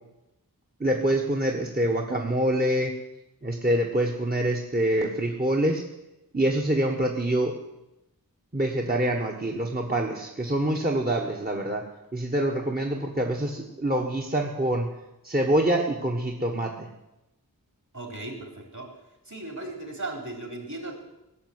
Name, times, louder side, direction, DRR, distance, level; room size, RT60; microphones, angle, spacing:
voice 1, 0.8-2.9 3.4-5.8 6.3-7.5 8.5-11.8 12.1-14.9 15.2-16.9, right 1 dB, 25° right, 0 dB, 1.4 m, -25 dB
voice 2, 17.9-18.9 19.3-21.0, right 2 dB, 50° right, 1 dB, 4.2 m, -36 dB
17.5 x 6.9 x 9.6 m, 0.95 s
wide cardioid pair, 55°, 37 cm